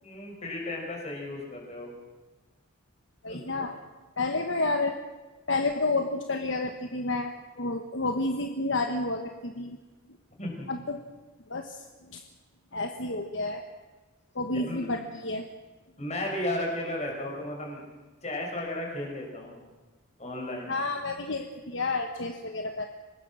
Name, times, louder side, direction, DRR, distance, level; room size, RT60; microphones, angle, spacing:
voice 1, 0.0-1.9 3.3-3.7 10.4-10.7 14.5-14.9 16.0-17.9 18.2-19.6 20.2-20.8, left 1 dB, 30° left, 0 dB, 5.7 m, -34 dB
voice 2, 3.2-3.8 4.2-5.0 5.5-9.8 10.7-11.0 11.5-11.8 12.1-12.2 12.7-13.6 14.3-15.4 20.7-22.8, left 2 dB, 60° left, 5 dB, 1.2 m, -30 dB
25.0 x 19.5 x 6.2 m, 1.2 s
head